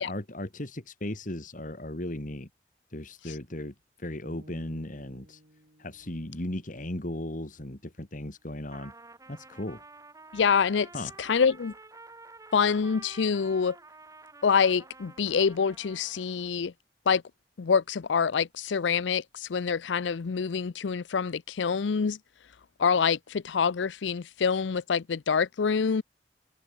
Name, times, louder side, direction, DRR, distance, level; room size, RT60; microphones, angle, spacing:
voice 1, 0.0-2.5 2.9-5.4 5.8-8.9 9.3-9.8 10.9-11.1, left 1 dB, 45° left, 2.4 m, -36 dB
sound 1, 4.2-8.4, equal, 55° right, 5.2 m, -58 dB
Trumpet, 8.6-16.5, right 3 dB, 20° right, 3.7 m, -50 dB
voice 2, 10.3-10.9 11.2-11.7 12.5-13.8 14.4-16.7 17.1-17.2 17.6-22.2 22.8-26.0, left 6 dB, 80° left, 0.5 m, -26 dB
head